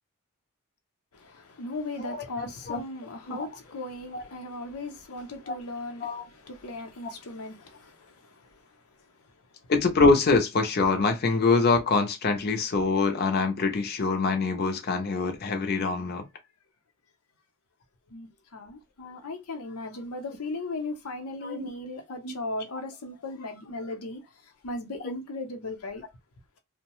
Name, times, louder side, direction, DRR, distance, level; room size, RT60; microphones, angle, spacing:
voice 1, 1.1-9.2 18.1-26.0, left 2 dB, 85° left, 0.7 m, -38 dB
voice 2, 2.0-2.8 3.3-3.5 4.1-4.2 5.5-5.6 6.0-6.2 9.7-16.2 21.4-21.7 22.2-22.3, left 4 dB, 45° left, 0.5 m, -25 dB
2.6 x 2.1 x 3.0 m
head